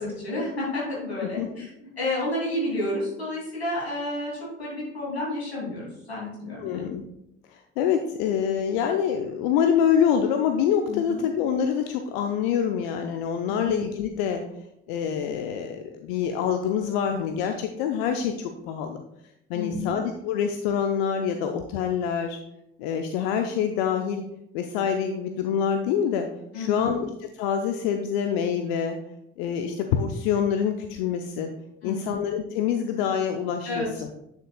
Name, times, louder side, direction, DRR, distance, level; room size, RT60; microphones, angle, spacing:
voice 1, 0.0-6.9 10.9-11.2 13.5-13.7 19.5-20.0 26.5-27.0 31.8-32.1 33.7-33.9, left 1 dB, 90° left, -5 dB, 2.7 m, -31 dB
voice 2, 1.4-1.7 6.6-7.0 7.5-14.4 14.9-19.0 19.5-22.4 22.8-24.2 24.5-26.3 26.5-29.0 29.4-31.5 31.8-34.1, left 8 dB, 65° left, 5 dB, 0.6 m, -26 dB
9.0 x 6.6 x 2.3 m, 0.84 s
figure-of-eight pair, 55°, 31 cm